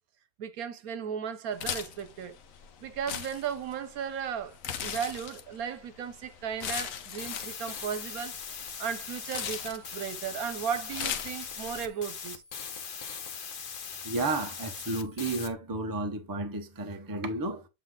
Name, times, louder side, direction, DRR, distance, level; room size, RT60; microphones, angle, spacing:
voice 1, 0.4-2.4 2.8-8.3 8.8-12.4, right 7 dB, 75° right, 1.2 m, -35 dB
sound 1, 1.5-11.9, left 8 dB, 65° left, 1.2 m, -39 dB
sound 2, 7.2-15.5, left 6 dB, 45° left, 0.8 m, -40 dB
voice 2, 14.0-17.7, right 2 dB, 20° right, 0.6 m, -32 dB
7.7 x 3.8 x 3.6 m
omnidirectional pair, 1.6 m